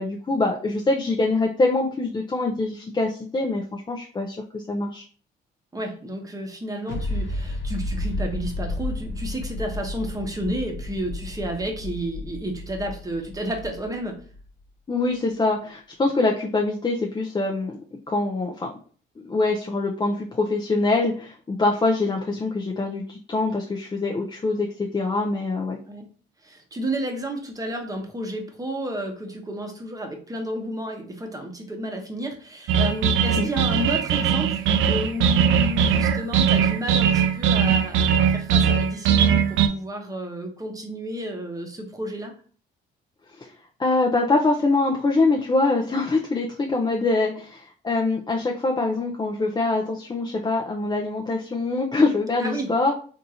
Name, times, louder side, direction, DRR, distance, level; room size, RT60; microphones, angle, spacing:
voice 1, 0.0-5.0 14.9-17.8 18.1-18.7 19.2-24.7 24.9-25.8 33.4-33.5 43.4-43.5 43.8-52.9, left 3 dB, 20° left, 0 dB, 0.5 m, -24 dB
voice 2, 5.7-14.2 25.9-26.1 26.4-42.3 52.4-52.7, right 1 dB, 15° right, 3 dB, 0.9 m, -31 dB
sound 1, 6.9-14.4, left 1 dB, 75° left, 0.9 m, -32 dB
sound 2, 32.7-39.7, right 7 dB, 80° right, 0.4 m, -20 dB
3.5 x 2.6 x 2.8 m, 0.43 s
cardioid pair, 90°, 20 cm